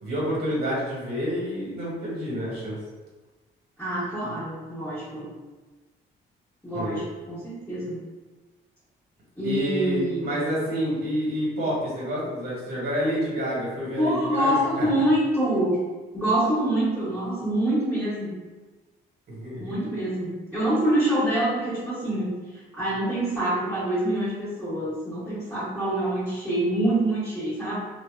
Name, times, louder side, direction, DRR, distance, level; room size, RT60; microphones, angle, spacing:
voice 1, 0.0-2.8 6.7-7.0 9.4-15.0 19.3-19.7, equal, 55° right, -6 dB, 1.1 m, -28 dB
voice 2, 3.8-5.3 6.6-8.0 9.4-10.3 14.0-15.8 16.1-18.4 19.6-27.8, right 1 dB, 5° left, -13 dB, 1.1 m, -26 dB
2.6 x 2.1 x 2.3 m, 1.3 s
cardioid pair, 90°, 20 cm